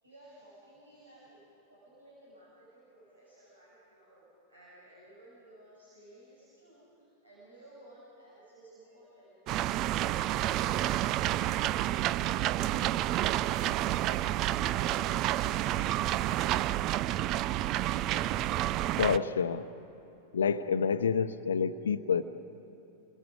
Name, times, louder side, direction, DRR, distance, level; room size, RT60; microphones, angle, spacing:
voice 1, 0.0-14.3, right 1 dB, 75° right, -7 dB, 7.0 m, -56 dB
sound 1, 9.5-19.2, right 14 dB, 35° right, 0.4 m, -29 dB
voice 2, 19.0-19.7 20.3-22.2, left 6 dB, 70° left, 12 dB, 0.8 m, -28 dB
29.5 x 23.5 x 5.2 m, 2.9 s
figure-of-eight pair, 90°, 0 cm